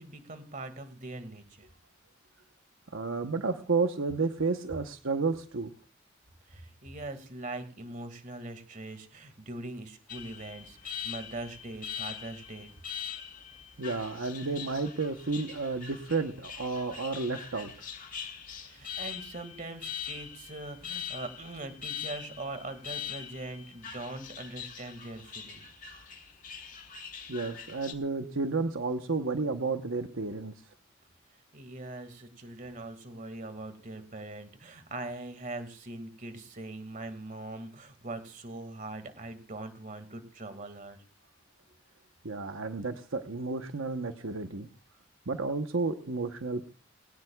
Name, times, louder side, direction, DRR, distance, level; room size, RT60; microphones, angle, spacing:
voice 1, 0.0-1.7 6.5-12.7 18.6-25.6 31.5-41.0, right 2 dB, 40° right, 9 dB, 2.0 m, -42 dB
voice 2, 2.9-5.7 13.8-17.7 27.3-30.5 42.2-44.7 45.3-46.7, right 3 dB, 80° right, 6 dB, 1.0 m, -31 dB
Alarm, 10.1-27.9, left 8 dB, 40° left, 1.7 m, -42 dB
21.5 x 17.5 x 2.3 m, 0.37 s
head